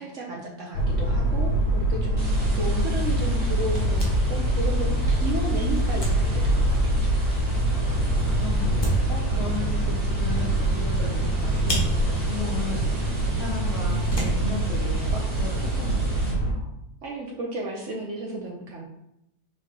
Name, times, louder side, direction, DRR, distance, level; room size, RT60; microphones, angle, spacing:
voice 1, 0.0-7.1 9.4-9.5 13.3-13.4 15.5-15.7 17.0-18.8, right 2 dB, 65° right, -1 dB, 0.8 m, -33 dB
sound 1, 0.7-16.5, right 1 dB, 85° left, 1.5 m, -24 dB
sound 2, 2.2-16.3, right 1 dB, 30° right, 1.0 m, -40 dB
sound 3, 2.4-16.0, right 1 dB, 20° left, 0.7 m, -35 dB
voice 2, 2.5-3.2 7.7-16.8, left 5 dB, 65° left, -3 dB, 0.6 m, -36 dB
4.7 x 2.8 x 3.5 m, 0.82 s
omnidirectional pair, 1.8 m